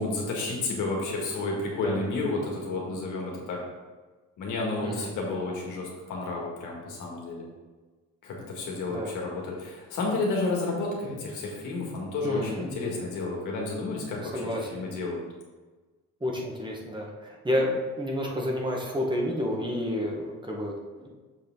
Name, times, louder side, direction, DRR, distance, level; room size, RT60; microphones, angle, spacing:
voice 1, 0.0-3.6 4.4-7.5 8.2-15.3, left 3 dB, 85° left, -2 dB, 1.8 m, -31 dB
voice 2, 12.2-12.7 14.3-14.9 16.2-20.7 21.0-21.1, left 1 dB, 15° right, -1 dB, 1.4 m, -30 dB
7.0 x 5.0 x 3.8 m, 1.3 s
cardioid pair, 90°, 30 cm